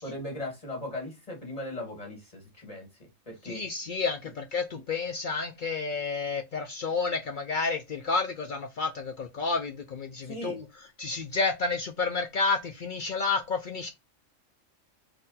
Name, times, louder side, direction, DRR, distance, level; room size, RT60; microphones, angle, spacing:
voice 1, 0.0-2.9 3.3-3.6 10.2-10.6, left 1 dB, 30° left, 2.1 m, -38 dB
voice 2, 3.4-10.6 11.0-13.9, left 4 dB, 60° left, 0.5 m, -30 dB
4.3 x 2.6 x 3.9 m
omnidirectional pair, 1.3 m